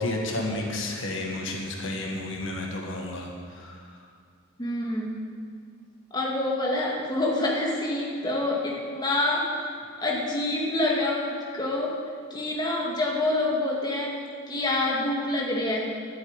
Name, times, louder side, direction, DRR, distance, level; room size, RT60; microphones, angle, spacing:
voice 1, 0.0-3.8, left 2 dB, 65° left, 0 dB, 1.9 m, -31 dB
voice 2, 4.6-5.2 6.1-9.5 10.0-12.0 12.3-14.2 14.5-16.0, left 2 dB, 20° left, -3 dB, 1.9 m, -27 dB
12.0 x 9.1 x 9.0 m, 2.1 s
head